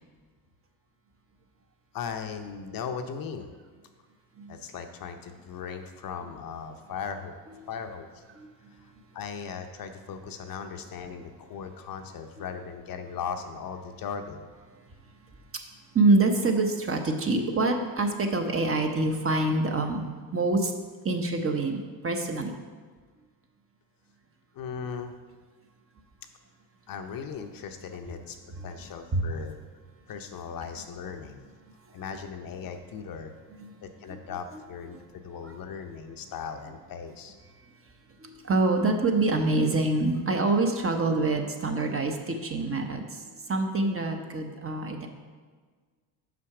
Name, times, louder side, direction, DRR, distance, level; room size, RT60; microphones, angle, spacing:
voice 1, 1.9-3.5 4.5-7.3 7.7-8.2 8.8-14.5 24.5-25.2 26.9-28.4 28.6-29.5 30.1-31.4 31.9-33.3 33.8-37.4, left 6 dB, 50° left, 6 dB, 0.7 m, -38 dB
voice 2, 15.9-20.7 21.0-22.5 29.1-29.2 31.7-31.8 33.5-33.7 34.1-34.2 34.9-35.0 35.4-35.6 38.2-45.1, right 2 dB, 30° right, 4 dB, 0.9 m, -26 dB
6.0 x 5.7 x 4.8 m, 1.5 s
supercardioid pair, 85°, 46 cm